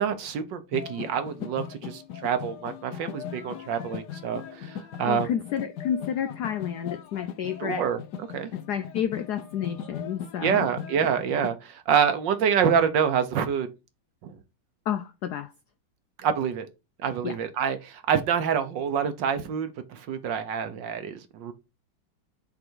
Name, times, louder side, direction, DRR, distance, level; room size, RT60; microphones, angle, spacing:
voice 1, 0.0-5.3 7.6-8.0 8.3-8.5 10.4-13.7 14.2-14.3 16.2-16.7 17.0-21.5, right 7 dB, 65° right, 1.4 m, -26 dB
sound 1, 0.7-11.5, left 9 dB, 60° left, 1.2 m, -39 dB
voice 2, 5.1-7.9 8.5-10.7 14.9-15.5 17.2-17.4, left 9 dB, 90° left, 0.8 m, -30 dB
7.8 x 3.9 x 4.6 m
omnidirectional pair, 2.3 m